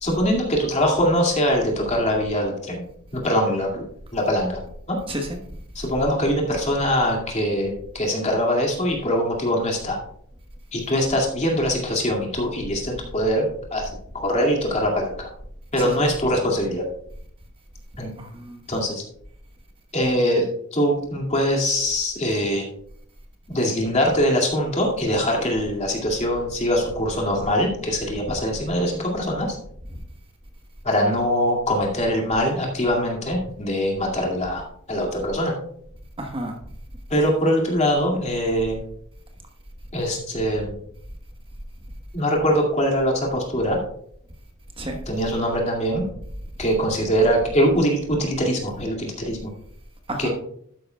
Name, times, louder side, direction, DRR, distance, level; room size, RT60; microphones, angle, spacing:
voice 1, 0.0-2.8 3.1-3.8 4.1-4.6 4.9-5.0 5.8-10.0 10.7-13.9 14.1-15.3 15.7-16.8 18.0-18.1 18.7-19.0 19.9-22.7 23.5-29.6 30.8-34.6 34.9-35.5 37.1-38.8 39.9-40.7 42.1-43.8 45.1-46.1 46.6-49.5 50.2-50.3, equal, 35° left, 0 dB, 2.2 m, -22 dB
voice 2, 5.1-5.4 15.8-16.1 18.2-18.6 36.2-36.5 44.8-45.0 50.1-50.3, right 1 dB, 25° right, 2 dB, 1.2 m, -31 dB
12.0 x 9.7 x 2.3 m, 0.66 s
head